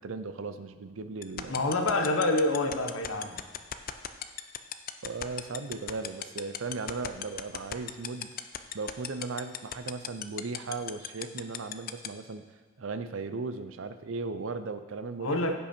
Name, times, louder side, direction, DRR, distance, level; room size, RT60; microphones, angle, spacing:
voice 1, 0.0-1.7 5.0-8.3 8.7-12.4 12.8-15.5, right 4 dB, 70° right, 11 dB, 0.6 m, -37 dB
sound 1, 1.2-12.1, left 11 dB, 45° left, 0.5 m, -34 dB
voice 2, 1.5-3.4 15.2-15.5, left 2 dB, 85° left, 5 dB, 1.1 m, -27 dB
15.5 x 5.5 x 4.4 m, 1.4 s
head